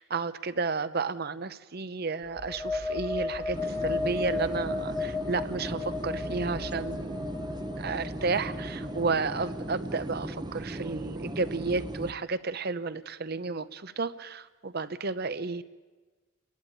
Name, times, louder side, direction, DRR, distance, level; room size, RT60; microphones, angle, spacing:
voice 1, 0.0-7.3 7.8-15.6, right 4 dB, 50° right, 13 dB, 0.8 m, -32 dB
sound 1, 2.2-9.8, left 3 dB, 20° left, 1.2 m, -35 dB
sound 2, 3.5-12.1, right 1 dB, 20° right, 0.8 m, -37 dB
29.5 x 11.5 x 8.6 m, 1.3 s
head